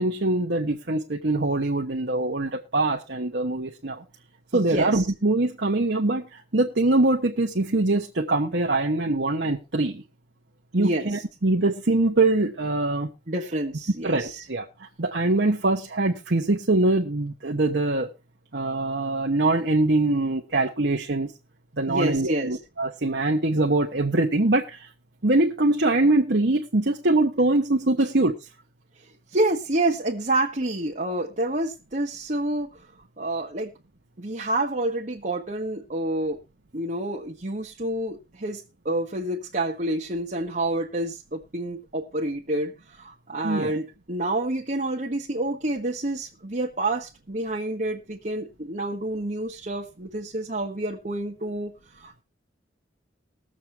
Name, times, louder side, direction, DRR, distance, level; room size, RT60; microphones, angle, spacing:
voice 1, 0.0-4.0 4.5-6.3 6.5-10.0 10.7-13.1 14.0-14.7 15.0-18.1 18.5-21.3 21.8-24.8 25.2-28.4 43.4-43.7, right 2 dB, 65° right, 1.2 m, -23 dB
voice 2, 4.5-5.1 10.8-11.2 13.3-14.5 21.9-22.6 29.0-32.9 33.2-33.7 34.2-36.4 36.7-52.2, right 1 dB, 45° right, 1.4 m, -28 dB
21.0 x 7.7 x 3.3 m
head